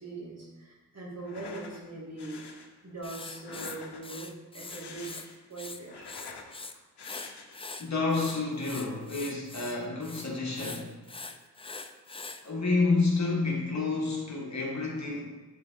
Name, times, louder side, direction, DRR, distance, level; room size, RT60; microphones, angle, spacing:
voice 1, 0.0-5.1 5.5-6.1, right 2 dB, 40° right, -5 dB, 2.1 m, -41 dB
sound 1, 1.2-1.8 2.2-2.7 3.3-4.2 4.6-5.5 5.8-6.5 7.0-7.7, left 4 dB, 80° left, 0.8 m, -46 dB
Writing, 3.0-5.3 5.5-6.7 7.0-12.4, left 3 dB, 15° left, 0.3 m, -43 dB
voice 2, 7.8-11.0 12.4-15.2, left 3 dB, 45° left, -2 dB, 1.3 m, -29 dB
8.4 x 3.9 x 3.6 m, 1.2 s
cardioid pair, 70°, 39 cm